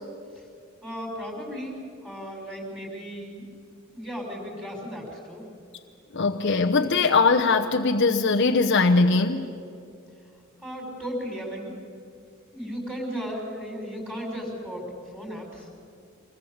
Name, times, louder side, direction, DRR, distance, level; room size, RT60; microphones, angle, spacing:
voice 1, 0.8-3.5 3.9-5.5 10.6-11.8 12.5-15.7, equal, 5° right, -4 dB, 5.7 m, -35 dB
voice 2, 6.1-9.5, left 4 dB, 55° left, 3 dB, 0.9 m, -21 dB
25.5 x 20.5 x 8.0 m, 2.4 s
head